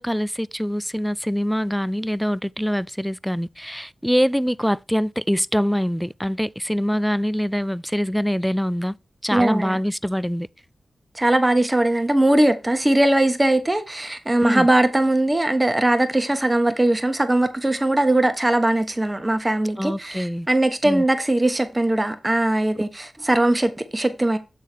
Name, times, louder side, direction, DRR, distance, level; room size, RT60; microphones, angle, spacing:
voice 1, 0.0-9.0 9.2-10.5 14.4-14.7 19.8-20.5 20.8-21.0, equal, ahead, 0.3 m, -24 dB
voice 2, 9.3-9.8 11.1-24.4, right 1 dB, 20° right, 1.2 m, -20 dB
8.3 x 3.7 x 4.5 m
cardioid pair, 60°, 0 cm